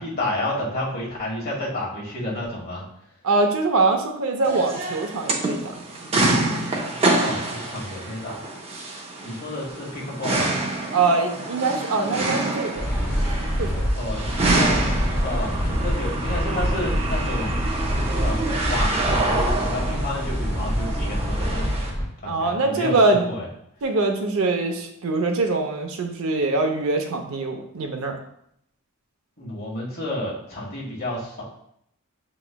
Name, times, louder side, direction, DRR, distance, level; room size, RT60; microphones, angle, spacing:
voice 1, 0.0-2.8 7.2-8.4 9.2-10.6 13.9-14.8 15.2-17.8 18.2-21.9 22.2-23.5 29.4-31.4, left 1 dB, 45° left, -4 dB, 1.4 m, -30 dB
voice 2, 3.2-5.7 10.9-12.9 13.6-13.9 22.2-23.3 23.8-28.2, right 3 dB, 70° right, 4 dB, 0.6 m, -23 dB
sound 1, 4.4-21.9, right 2 dB, 25° right, 0.6 m, -27 dB
sound 2, 12.8-22.1, equal, 20° left, 0.9 m, -25 dB
6.8 x 3.0 x 2.2 m, 0.73 s
head